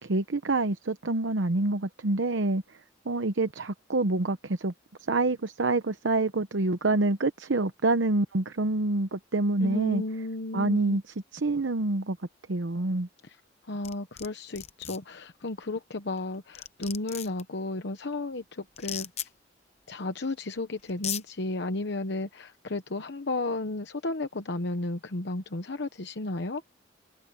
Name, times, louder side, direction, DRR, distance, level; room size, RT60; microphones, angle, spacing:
voice 1, 0.0-2.6 3.1-4.7 5.1-10.0 10.5-12.2 12.5-13.1, right 2 dB, 75° right, 0.9 m, -27 dB
voice 2, 9.6-11.0 13.2-13.4 13.7-19.1 19.9-26.6, left 2 dB, 65° left, 1.0 m, -33 dB
sound 1, 13.8-14.3 14.5-15.0 16.2-16.3 16.5-17.4 18.8-19.3 20.4-20.5 20.9-21.2, left 10 dB, 35° left, 0.8 m, -35 dB
head